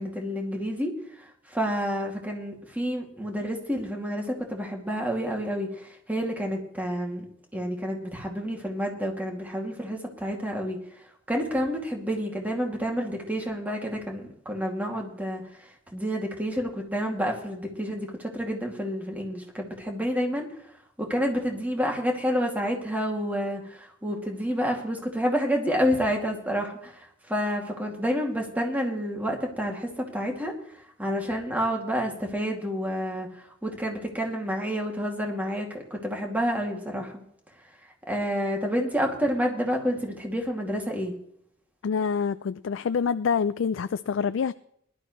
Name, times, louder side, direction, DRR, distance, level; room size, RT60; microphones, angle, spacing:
voice 1, 0.0-7.2 7.5-10.8 11.3-15.4 15.9-20.5 21.0-30.5 31.0-37.2 38.1-41.1, equal, 10° right, 2.4 m, -29 dB
voice 2, 41.8-44.5, left 6 dB, 80° left, 0.4 m, -26 dB
19.5 x 12.0 x 3.1 m
head